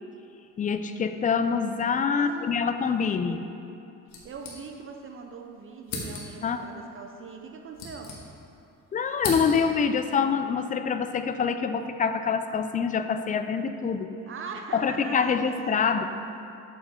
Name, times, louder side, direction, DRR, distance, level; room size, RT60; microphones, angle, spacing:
voice 1, 0.6-3.4 6.4-6.7 8.9-14.1 14.7-16.1, left 6 dB, 25° left, 9 dB, 0.3 m, -26 dB
voice 2, 2.1-2.6 4.2-8.1 14.3-15.8, right 5 dB, 40° right, 3 dB, 0.6 m, -41 dB
sound 1, 4.1-5.1 5.3-5.4 5.8-6.5 7.4-8.6 8.9-9.9, left 3 dB, 70° left, 1.6 m, -37 dB
8.0 x 7.2 x 3.7 m, 2.8 s
cardioid pair, 125°, 31 cm